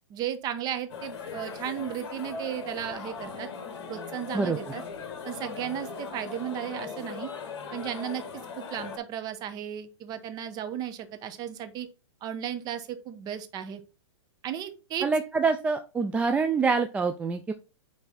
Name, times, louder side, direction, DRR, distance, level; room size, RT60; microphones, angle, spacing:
voice 1, 0.1-3.5 3.9-4.8 5.2-7.3 7.7-8.2 8.6-11.9 12.2-13.8 14.4-15.1, right 10 dB, 25° right, 9 dB, 1.0 m, -35 dB
sound 1, 0.9-9.0, left 5 dB, 55° left, 2.3 m, -39 dB
voice 2, 15.0-17.5, right 4 dB, 10° right, 6 dB, 0.4 m, -26 dB
9.3 x 3.3 x 4.1 m, 0.31 s
hypercardioid pair, 145°, 16 cm